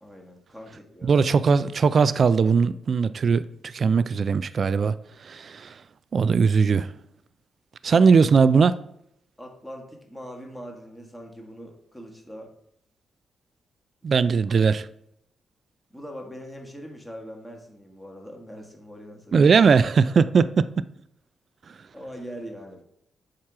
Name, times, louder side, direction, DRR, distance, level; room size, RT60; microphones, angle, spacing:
voice 1, 0.0-1.2 7.9-8.0 9.4-12.5 14.1-14.7 15.9-19.5 21.9-22.8, equal, 5° left, 1.6 m, -42 dB
voice 2, 1.0-4.9 5.2-5.7 6.1-6.9 7.8-8.8 14.0-14.9 19.3-20.7, right 5 dB, 55° right, 0.3 m, -19 dB
7.4 x 2.9 x 4.8 m
supercardioid pair, 50°, 0 cm